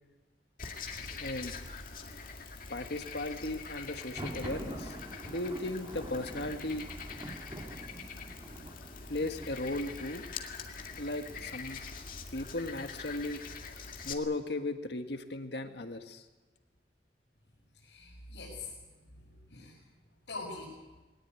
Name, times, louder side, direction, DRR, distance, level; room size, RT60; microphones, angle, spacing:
Frog, 0.6-14.1, left 5 dB, 50° left, 2.1 m, -44 dB
voice 1, 1.2-1.5 2.7-4.9 5.2-6.9 9.1-10.2 11.0-11.8 12.3-13.4 14.0-16.2, left 2 dB, 70° left, 7 dB, 1.6 m, -36 dB
Thunder, 3.9-11.7, right 1 dB, 25° right, 2.8 m, -46 dB
voice 2, 17.7-18.7 19.0-19.9 20.3-20.8, left 3 dB, 85° left, -5 dB, 6.7 m, -44 dB
21.0 x 19.0 x 9.5 m, 1.2 s
head